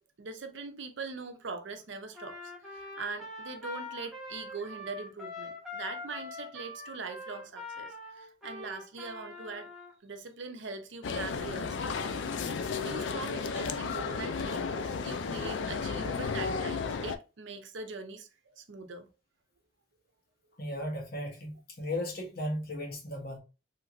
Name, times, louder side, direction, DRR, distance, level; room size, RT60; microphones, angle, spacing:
voice 1, 0.2-2.4 2.7-9.7 10.0-12.2 12.8-19.1, right 4 dB, 75° right, 0.6 m, -42 dB
Trumpet, 2.1-9.9, left 2 dB, ahead, 1.1 m, -43 dB
sound 1, 11.0-17.2, left 5 dB, 70° left, 0.4 m, -33 dB
voice 2, 20.6-23.4, left 1 dB, 50° left, 1.0 m, -36 dB
3.2 x 2.9 x 2.5 m
head